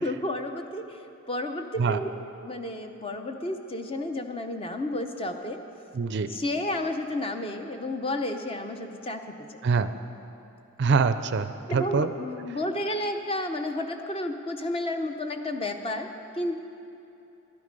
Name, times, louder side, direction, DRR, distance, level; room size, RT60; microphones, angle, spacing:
voice 1, 0.0-1.0 1.3-2.1 2.4-5.6 6.3-9.2 9.5-9.6 11.7-16.6, left 1 dB, 25° left, 6 dB, 0.7 m, -31 dB
voice 2, 5.9-6.3 9.6-9.9 10.8-12.1, right 5 dB, 50° right, 11 dB, 0.4 m, -24 dB
13.0 x 11.5 x 5.3 m, 2.9 s
head